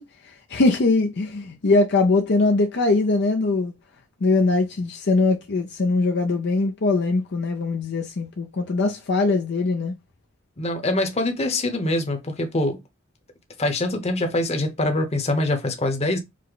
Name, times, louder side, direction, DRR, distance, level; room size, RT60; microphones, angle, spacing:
voice 1, 0.0-3.7 4.2-9.9, left 3 dB, 55° left, 0.6 m, -21 dB
voice 2, 10.6-12.8 13.6-16.2, left 2 dB, 30° left, 1.0 m, -24 dB
5.0 x 2.2 x 3.8 m
head